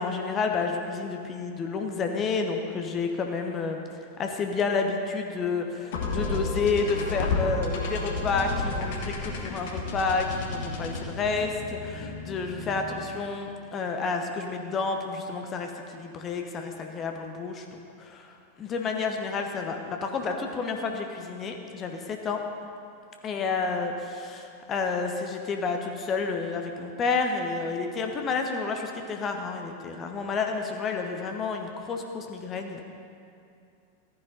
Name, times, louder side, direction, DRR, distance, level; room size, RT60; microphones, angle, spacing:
voice 1, 0.0-3.8 4.2-22.4 23.2-32.8, left 4 dB, 30° left, 4 dB, 0.9 m, -30 dB
sound 1, 5.9-13.2, left 3 dB, 55° left, 1.4 m, -32 dB
14.5 x 9.8 x 3.9 m, 2.5 s
figure-of-eight pair, 90°, 0 cm